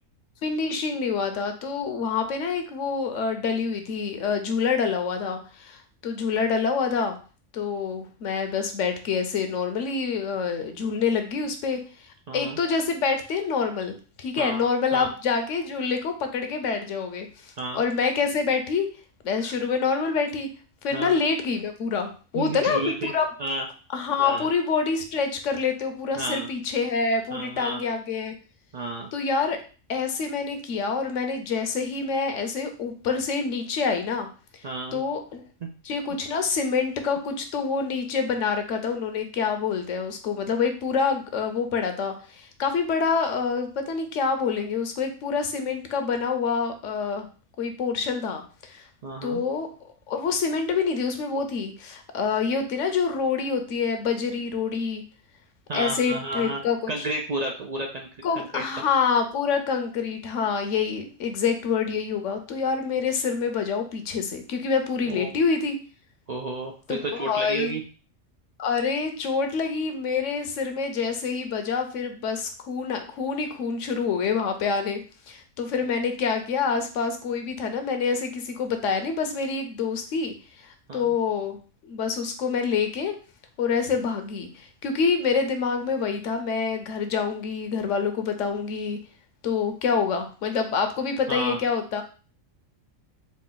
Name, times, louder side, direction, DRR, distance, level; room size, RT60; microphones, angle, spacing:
voice 1, 0.4-7.2 7.5-11.8 12.3-18.9 19.2-20.5 20.8-23.3 23.9-28.3 29.1-29.6 29.9-34.3 34.9-35.4 35.8-47.3 47.6-48.8 49.2-49.7 50.1-55.0 55.7-56.9 58.2-65.8 66.9-67.8 68.6-75.0 75.3-80.3 80.9-81.6 81.9-83.1 83.6-89.0 89.4-92.0, left 5 dB, 70° left, 6 dB, 1.0 m, -26 dB
voice 2, 12.3-12.6 14.4-14.6 14.9-15.1 17.6-17.8 19.4-19.5 20.9-21.2 22.3-23.1 23.4-23.7 24.2-24.5 26.2-26.5 27.3-27.8 28.7-29.1 34.6-35.0 49.0-49.4 55.7-56.6 56.9-58.1 58.3-58.6 65.0-65.4 66.3-67.8 80.9-81.2 91.3-91.6, right 2 dB, 70° right, 2 dB, 0.3 m, -31 dB
4.1 x 2.4 x 3.8 m, 0.37 s
omnidirectional pair, 1.4 m